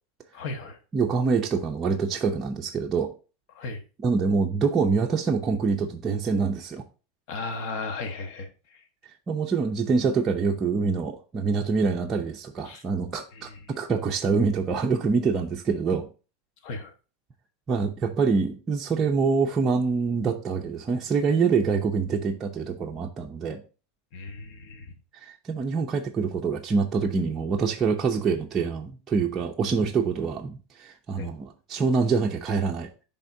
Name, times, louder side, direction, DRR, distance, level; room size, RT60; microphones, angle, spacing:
voice 1, 0.3-0.8 3.5-3.8 7.3-8.8 12.6-12.8 13.3-13.6 16.6-16.9 24.1-24.9 31.2-31.3, left 3 dB, 55° left, 1.2 m, -36 dB
voice 2, 0.9-3.1 4.0-6.8 9.3-16.1 17.7-23.6 25.1-32.9, right 5 dB, 20° right, 0.6 m, -25 dB
10.5 x 3.6 x 2.6 m
supercardioid pair, 145°, 0 cm